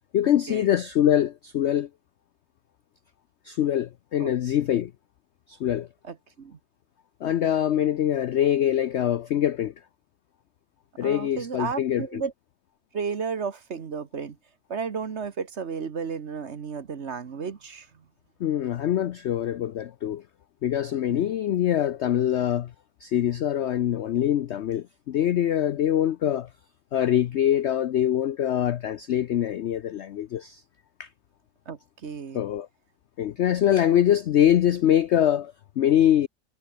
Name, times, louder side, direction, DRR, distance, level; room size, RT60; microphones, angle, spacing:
voice 1, 0.1-1.9 3.4-4.9 5.5-5.9 7.2-9.7 11.0-12.2 18.4-20.2 20.6-22.7 23.0-26.5 26.9-30.6 31.0-31.1 32.3-32.7 33.2-36.3, left 11 dB, 75° left, 0.6 m, -24 dB
voice 2, 6.1-6.6 11.0-12.3 12.9-14.3 14.7-17.9 21.1-21.3 31.7-32.4 33.9-34.0, right 5 dB, 45° right, 1.4 m, -33 dB
omnidirectional pair, 1.8 m